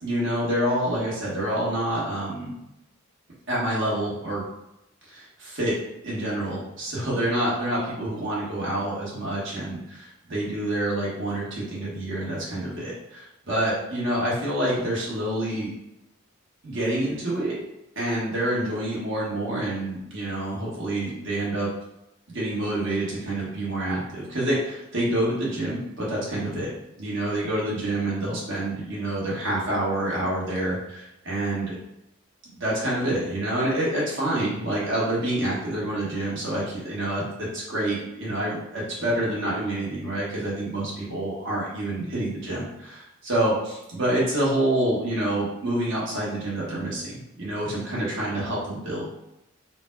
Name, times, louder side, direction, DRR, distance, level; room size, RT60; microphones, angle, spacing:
voice 1, 0.0-2.5 3.5-4.4 5.1-5.8 6.0-15.7 16.6-17.6 17.9-21.7 22.3-26.7 27.0-31.7 32.6-49.1, right 1 dB, 55° right, -6 dB, 1.5 m, -27 dB
3.8 x 2.3 x 4.5 m, 0.87 s
head